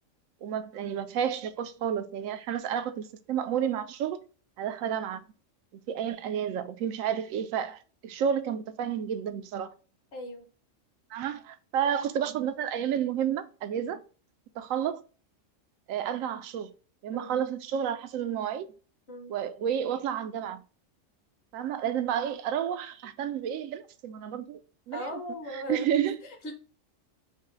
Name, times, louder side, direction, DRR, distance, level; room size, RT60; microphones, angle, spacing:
voice 1, 0.4-4.2 4.6-5.2 5.9-9.7 11.1-14.0 14.6-15.0 15.9-16.7 17.0-18.7 19.3-20.6 21.5-24.6 24.9-25.1 25.5-26.2, right 9 dB, 85° right, 1.0 m, -31 dB
voice 2, 10.1-10.5 17.1-17.3 19.1-19.3 24.9-25.9 26.2-26.5, left 1 dB, 55° left, 1.2 m, -38 dB
5.5 x 2.1 x 3.8 m
omnidirectional pair, 1.3 m